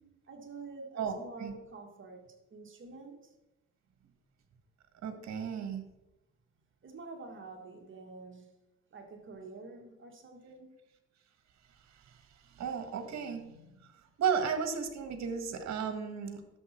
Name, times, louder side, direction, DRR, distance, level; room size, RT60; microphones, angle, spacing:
voice 1, 0.3-2.2 2.5-3.3 6.8-8.5 8.9-10.7, right 3 dB, 40° right, 2 dB, 2.0 m, -47 dB
voice 2, 1.0-1.5 5.0-5.8 12.6-13.9 14.2-16.4, right 6 dB, 60° right, 7 dB, 1.8 m, -34 dB
11.0 x 7.1 x 4.5 m, 0.97 s
cardioid pair, 90°, 30 cm